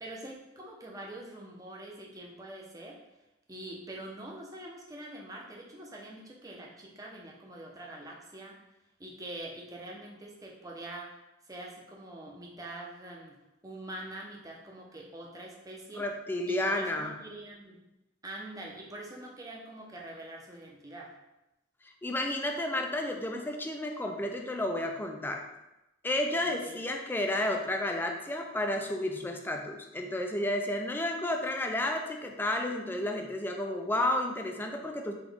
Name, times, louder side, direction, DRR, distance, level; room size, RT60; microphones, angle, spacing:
voice 1, 0.0-3.0 3.5-8.6 9.0-11.2 11.5-13.4 13.6-16.1 16.5-17.8 18.2-21.1 26.4-26.9, right 1 dB, 20° right, -2 dB, 0.7 m, -44 dB
voice 2, 15.9-17.1 22.0-25.4 26.0-35.1, left 1 dB, 10° left, 3 dB, 0.4 m, -31 dB
3.8 x 3.0 x 3.5 m, 0.93 s
head